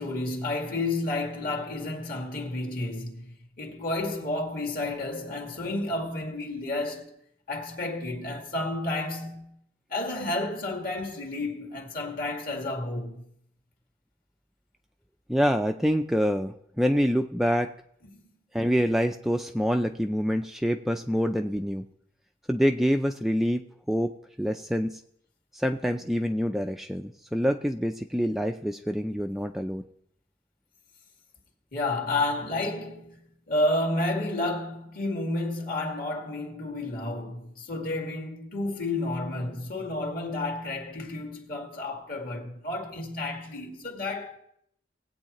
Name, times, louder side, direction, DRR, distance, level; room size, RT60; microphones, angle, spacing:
voice 1, 0.0-7.1 7.5-9.6 9.9-13.2 31.7-44.4, left 2 dB, 50° left, 2.1 m, -31 dB
voice 2, 15.3-17.7 18.5-21.8 22.5-24.1 24.4-25.0 25.5-29.8, equal, ahead, 0.3 m, -26 dB
19.0 x 8.5 x 3.0 m
head